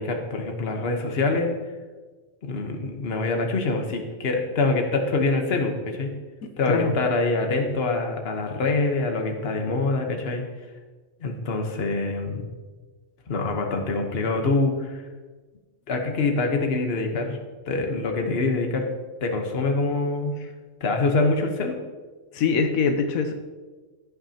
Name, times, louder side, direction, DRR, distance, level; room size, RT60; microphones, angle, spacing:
voice 1, 0.0-1.5 2.5-6.1 6.6-10.4 11.2-12.5 13.3-15.0 15.9-17.4 17.7-18.8 19.2-20.4 20.8-21.7, left 3 dB, 50° left, 3 dB, 1.3 m, -25 dB
voice 2, 22.3-23.3, left 5 dB, 85° left, 6 dB, 1.1 m, -23 dB
15.5 x 6.3 x 2.9 m, 1.3 s
omnidirectional pair, 1.5 m